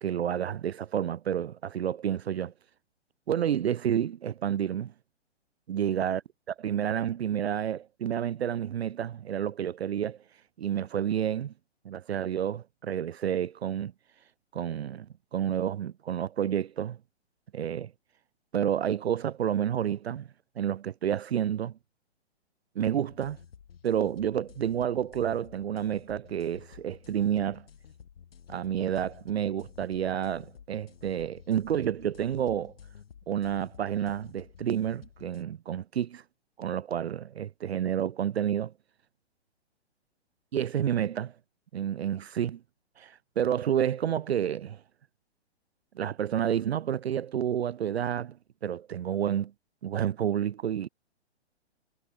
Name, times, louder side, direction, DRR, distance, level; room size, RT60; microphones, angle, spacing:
voice 1, 0.0-2.5 3.3-4.9 5.7-6.2 6.5-10.2 10.6-11.5 11.8-13.9 14.5-17.0 17.5-17.9 18.5-20.3 20.6-21.8 22.8-23.4 23.8-27.7 28.5-32.7 33.3-36.2 36.6-38.7 40.5-41.3 41.7-42.6 43.0-44.8 46.0-48.4 48.6-49.5 49.8-50.9, right 9 dB, 70° right, 0.5 m, -29 dB
sound 1, 23.1-35.4, left 8 dB, 60° left, 3.5 m, -52 dB
figure-of-eight pair, 120°, 33 cm